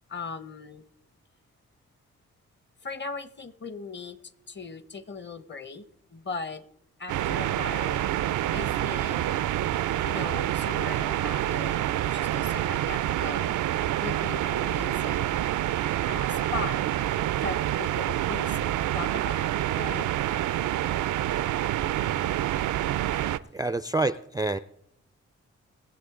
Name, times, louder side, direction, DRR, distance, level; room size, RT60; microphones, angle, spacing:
voice 1, 0.1-0.8 2.8-4.2 4.5-5.8 6.1-6.6 7.0-9.3 10.0-13.5 14.0-15.3 16.0-16.8 17.4-18.6 18.9-20.1 22.3-23.6, left 4 dB, 35° left, 14 dB, 1.0 m, -39 dB
sound 1, 7.1-23.4, right 13 dB, 70° right, 0.5 m, -27 dB
voice 2, 23.5-24.6, right 2 dB, 10° right, 14 dB, 0.4 m, -27 dB
20.0 x 7.5 x 3.7 m, 0.77 s
supercardioid pair, 50°, 31 cm